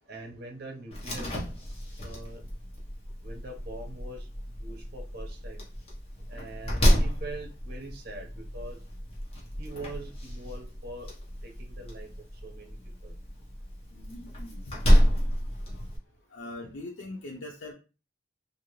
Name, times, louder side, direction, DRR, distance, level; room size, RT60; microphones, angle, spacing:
voice 1, 0.1-1.4 2.0-2.4 3.2-4.3 4.6-5.7 6.3-8.8 9.6-11.1 11.4-12.1 12.4-13.2, right 2 dB, 60° right, 2 dB, 0.8 m, -43 dB
Slam, 0.9-16.0, equal, 35° left, 0.9 m, -29 dB
voice 2, 13.9-14.8 15.7-15.9 16.3-17.7, left 2 dB, 85° left, 0 dB, 0.5 m, -42 dB
2.9 x 2.5 x 3.0 m, 0.33 s
head